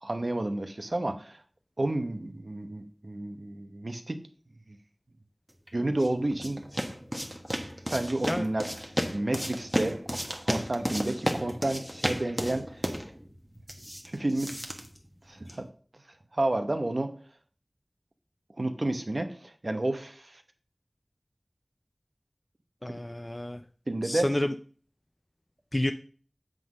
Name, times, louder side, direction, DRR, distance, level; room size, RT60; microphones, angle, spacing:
voice 1, 0.0-1.4 1.8-4.2 5.7-6.7 7.9-8.7 9.1-12.9 14.1-14.6 15.3-15.7 16.3-17.1 18.6-20.4 22.9-23.0 23.9-24.3, right 1 dB, 70° right, 7 dB, 0.9 m, -31 dB
sound 1, 5.7-15.7, equal, 10° right, 1.2 m, -34 dB
voice 2, 22.8-23.6 24.0-24.5 25.7-25.9, left 1 dB, 35° left, 9 dB, 0.4 m, -29 dB
7.7 x 3.8 x 6.3 m, 0.44 s
wide cardioid pair, 45°, 0 cm